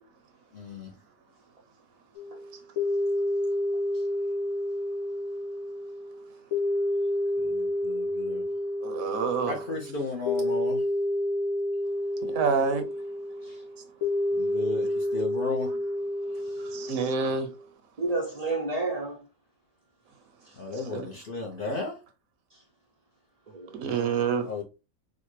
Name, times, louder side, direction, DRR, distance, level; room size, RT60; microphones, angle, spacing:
voice 1, 0.5-0.9 7.4-8.4 9.5-10.8 14.3-15.7 20.6-22.0 24.4-24.6, left 3 dB, 55° left, 0.6 m, -34 dB
sound 1, 2.2-17.6, left 1 dB, 80° left, 1.6 m, -29 dB
voice 2, 8.8-9.6 12.2-12.8 16.6-17.5 20.7-21.1 23.7-24.5, right 5 dB, 70° right, 1.1 m, -28 dB
voice 3, 18.0-19.2 23.5-24.1, right 3 dB, 55° right, 0.4 m, -31 dB
4.2 x 2.1 x 3.0 m
omnidirectional pair, 1.5 m